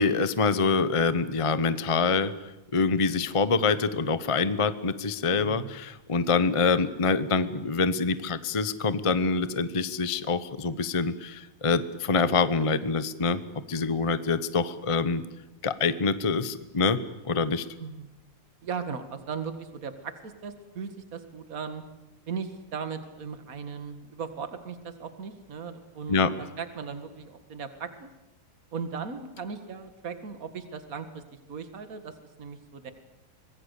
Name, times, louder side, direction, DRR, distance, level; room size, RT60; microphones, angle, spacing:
voice 1, 0.0-2.3 2.7-13.4 13.7-15.2 15.6-17.0 17.3-17.6 26.1-26.3, left 4 dB, 30° left, 13 dB, 0.5 m, -25 dB
voice 2, 5.3-5.7 17.8-18.1 18.6-21.8 22.3-28.1 28.7-31.2 31.5-32.9, right 6 dB, 50° right, 9 dB, 2.2 m, -37 dB
25.5 x 20.5 x 8.3 m, 0.98 s
omnidirectional pair, 2.0 m